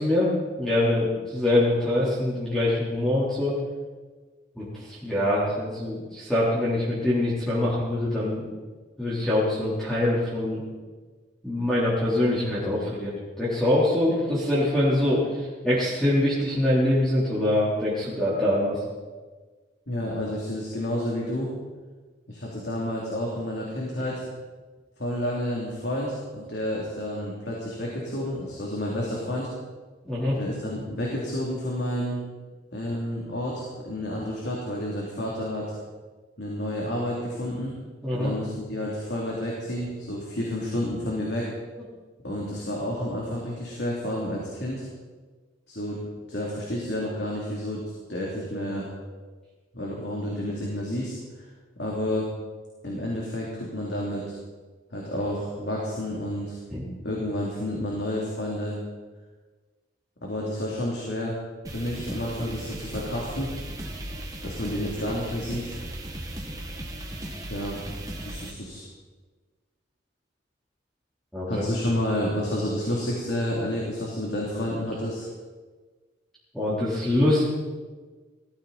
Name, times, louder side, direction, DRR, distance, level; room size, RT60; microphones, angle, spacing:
voice 1, 0.0-3.5 4.5-8.5 9.0-10.6 11.4-18.8 30.1-30.4 38.0-38.3 56.7-56.8 71.3-71.6 76.5-77.4, left 1 dB, ahead, -10 dB, 3.8 m, -24 dB
voice 2, 19.9-21.5 22.3-24.2 25.0-29.5 30.3-32.2 32.7-35.7 36.4-37.8 38.1-41.5 42.2-44.8 45.7-46.0 46.3-47.8 48.1-48.9 49.7-51.5 51.8-52.3 52.8-54.2 54.9-56.6 57.0-58.8 60.2-61.3 61.7-63.5 64.4-65.7 67.5-67.8 68.2-68.8 71.5-75.2, left 1 dB, 60° left, -4 dB, 3.2 m, -30 dB
sound 1, 61.6-68.5, right 1 dB, 20° right, 1.8 m, -37 dB
19.5 x 14.5 x 4.3 m, 1.4 s
head